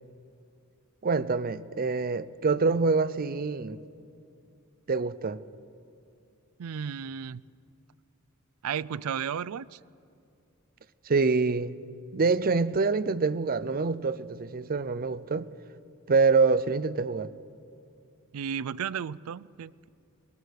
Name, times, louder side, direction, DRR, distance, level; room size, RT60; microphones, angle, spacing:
voice 1, 1.0-3.8 4.9-5.4 11.1-11.8 12.1-15.5 16.1-17.3, right 4 dB, 45° right, 0.6 m, -26 dB
voice 2, 6.6-7.4 8.6-9.8 18.3-19.9, right 7 dB, 90° right, 0.4 m, -34 dB
23.0 x 19.5 x 6.4 m
head